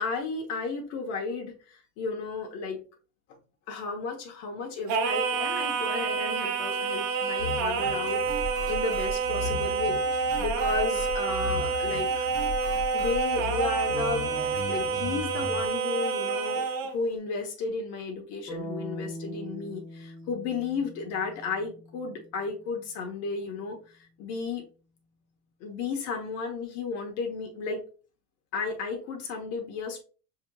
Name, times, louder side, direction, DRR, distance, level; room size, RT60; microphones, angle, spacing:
voice 1, 0.0-2.8 3.7-10.0 10.4-12.3 12.9-24.6 25.6-27.8 28.5-30.0, left 4 dB, 60° left, 2 dB, 1.0 m, -33 dB
Singing, 4.9-17.0, right 5 dB, 65° right, 0.8 m, -28 dB
sound 1, 7.4-15.6, left 2 dB, 20° right, 1.6 m, -37 dB
sound 2, 18.5-22.5, equal, 10° left, 0.5 m, -41 dB
5.9 x 2.9 x 2.2 m, 0.36 s
cardioid pair, 170°, 30 cm